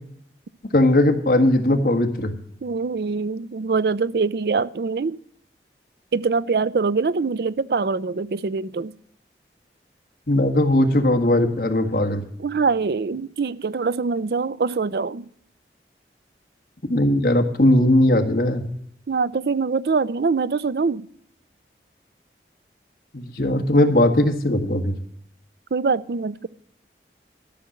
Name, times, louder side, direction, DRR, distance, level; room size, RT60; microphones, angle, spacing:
voice 1, 0.7-2.3 10.3-12.3 16.9-18.7 23.1-25.0, left 1 dB, 55° left, 1.7 m, -19 dB
voice 2, 2.6-5.2 6.1-8.9 12.4-15.3 19.1-21.1 25.7-26.5, right 4 dB, 65° right, 0.4 m, -23 dB
13.5 x 6.3 x 8.5 m
head